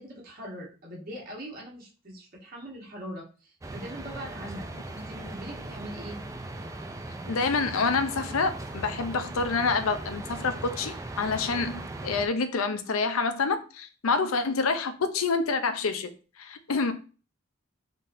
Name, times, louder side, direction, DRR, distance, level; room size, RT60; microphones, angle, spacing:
voice 1, 0.0-6.2, equal, 45° right, 1.3 m, -41 dB
sound 1, 3.6-12.3, right 2 dB, 15° right, 0.4 m, -39 dB
voice 2, 7.3-16.1 16.4-16.9, left 4 dB, 90° left, 0.6 m, -27 dB
3.8 x 3.7 x 2.6 m
head